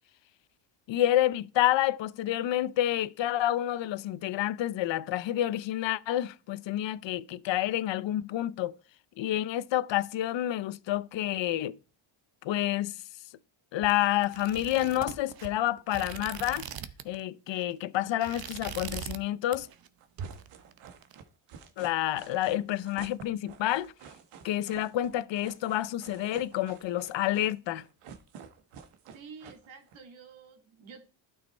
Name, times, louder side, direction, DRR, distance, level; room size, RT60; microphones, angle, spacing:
voice 1, 0.9-8.8 9.2-11.8 12.4-13.0 13.7-16.6 17.0-19.7 21.8-23.9 24.4-27.8, left 13 dB, 60° left, 0.7 m, -29 dB
sound 1, 13.8-17.2 17.5-17.7 18.1-19.2 19.5-19.9 20.2-21.1, right 8 dB, 45° right, 0.9 m, -41 dB
sound 2, 20.0-30.0, right 7 dB, 85° right, 1.6 m, -50 dB
voice 2, 29.1-31.0, right 5 dB, 65° right, 2.4 m, -49 dB
12.0 x 6.5 x 4.3 m
cardioid pair, 140°, 50 cm